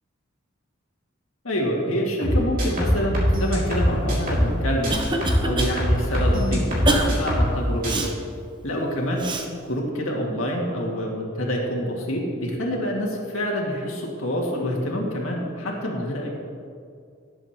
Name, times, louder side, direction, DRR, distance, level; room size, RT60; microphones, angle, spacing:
voice 1, 1.4-5.1 5.4-7.9 8.6-9.3 9.6-16.3, equal, 90° left, -2 dB, 2.1 m, -27 dB
sound 1, 2.2-4.6 4.8-7.6 7.8-8.1, equal, 45° right, 2.7 m, -22 dB
Cough, 4.3-5.7 6.1-6.3 6.8-7.1 7.8-8.1 9.2-9.5, right 2 dB, 25° right, 0.7 m, -25 dB
18.0 x 7.9 x 3.0 m, 2.2 s
head